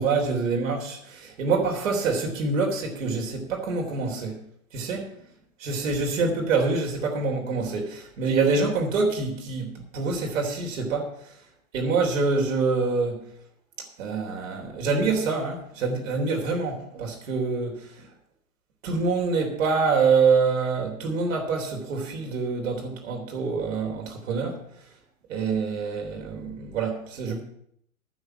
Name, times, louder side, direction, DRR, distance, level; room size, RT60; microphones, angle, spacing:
voice 1, 0.0-4.4 4.7-5.1 5.6-11.1 11.7-13.3 14.0-18.1 18.8-24.6 25.3-27.4, right 4 dB, 60° right, 3.5 m, -26 dB
9.9 x 7.3 x 8.6 m
figure-of-eight pair, 105°, 43 cm